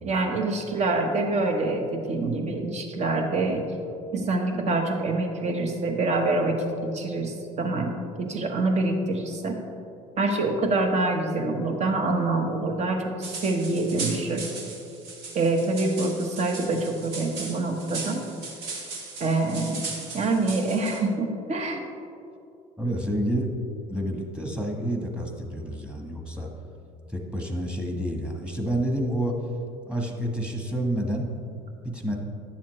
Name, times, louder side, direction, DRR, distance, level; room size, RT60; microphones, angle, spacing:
voice 1, 0.0-3.7 4.1-6.6 6.8-9.5 10.2-14.5 15.3-18.2 19.2-19.8 20.1-21.8, right 2 dB, 45° right, 4 dB, 1.2 m, -26 dB
sound 1, 13.2-21.0, right 3 dB, 70° right, 1.6 m, -37 dB
voice 2, 22.8-23.5 23.9-26.5 27.1-29.3 29.9-31.3 31.8-32.2, right 1 dB, 5° right, 1 dB, 1.3 m, -29 dB
10.5 x 7.1 x 3.2 m, 2.5 s
supercardioid pair, 85°, 17 cm